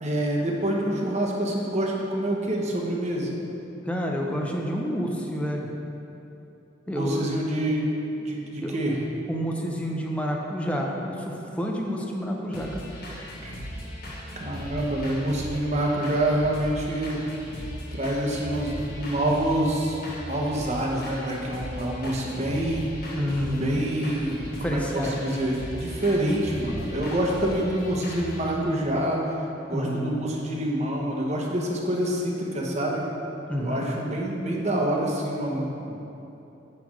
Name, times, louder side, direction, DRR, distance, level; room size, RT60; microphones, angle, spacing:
voice 1, 0.0-3.3 6.9-7.9 8.2-9.0 13.4-13.5 14.4-17.2 17.9-20.0 20.3-22.9 23.6-29.2 29.7-33.0 33.6-35.9, right 1 dB, 35° right, -1 dB, 1.0 m, -26 dB
voice 2, 3.9-5.7 6.9-7.2 8.6-8.8 9.3-12.9 23.1-23.9 24.6-25.2 29.7-30.1 33.5-33.8, equal, 5° left, -1 dB, 0.7 m, -29 dB
sound 1, 12.5-28.5, equal, 50° left, 1.5 m, -38 dB
9.4 x 3.4 x 6.3 m, 2.9 s
head